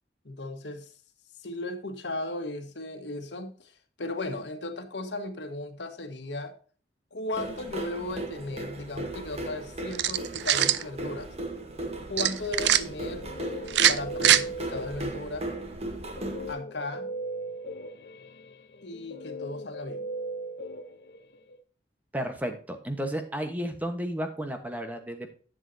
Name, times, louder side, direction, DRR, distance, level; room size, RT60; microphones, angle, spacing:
voice 1, 0.2-0.9 1.4-3.7 4.0-6.5 7.1-11.3 12.1-13.3 13.9-15.5 16.5-17.1 18.8-20.0, left 2 dB, 80° left, 1.5 m, -36 dB
sound 1, 7.3-16.5, right 1 dB, 35° right, 1.4 m, -37 dB
sound 2, 9.9-10.8 12.2-12.8 13.7-14.4, right 11 dB, 75° right, 0.5 m, -22 dB
Guitar, 12.9-15.4 16.2-21.6, right 1 dB, 60° left, 0.9 m, -38 dB
voice 2, 22.1-25.3, equal, 10° right, 1.1 m, -33 dB
11.0 x 7.5 x 2.7 m
head